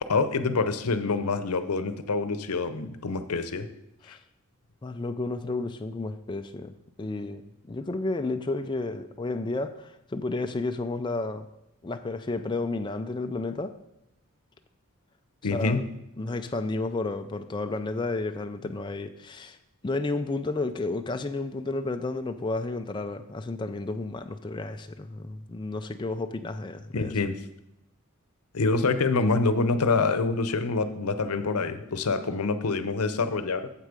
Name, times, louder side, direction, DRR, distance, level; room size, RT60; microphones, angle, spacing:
voice 1, 0.1-3.7 4.1-4.2 15.4-15.8 26.9-27.4 28.5-33.7, left 3 dB, 90° left, 11 dB, 0.7 m, -26 dB
voice 2, 4.8-6.7 7.0-11.5 11.8-13.7 15.5-15.8 16.2-19.6 19.8-27.1, left 2 dB, 20° left, 7 dB, 0.3 m, -32 dB
8.0 x 7.5 x 5.1 m, 0.87 s
head